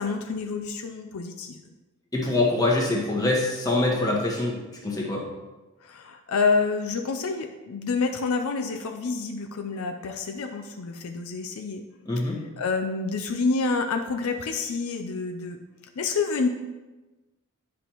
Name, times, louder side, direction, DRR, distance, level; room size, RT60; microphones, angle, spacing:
voice 1, 0.0-1.6 5.8-11.8 12.6-15.6 16.0-16.5, left 4 dB, 70° left, 5 dB, 0.5 m, -28 dB
voice 2, 2.1-5.3 12.1-12.4, left 2 dB, 15° left, -2 dB, 1.4 m, -24 dB
10.0 x 5.1 x 3.0 m, 1.1 s
head